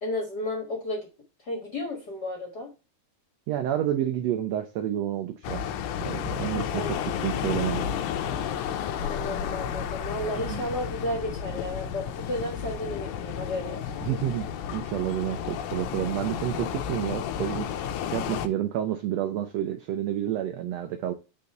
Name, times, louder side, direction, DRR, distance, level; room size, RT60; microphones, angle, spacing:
voice 1, 0.0-1.1 1.4-2.7 6.5-7.0 9.0-13.9, left 1 dB, 45° left, 1.4 m, -33 dB
voice 2, 3.5-5.6 6.0-7.9 10.4-10.6 14.0-17.7 18.0-21.1, right 11 dB, 80° right, 1.5 m, -29 dB
sound 1, 5.4-18.5, left 8 dB, 80° left, 2.0 m, -32 dB
5.4 x 3.8 x 5.7 m
omnidirectional pair, 3.6 m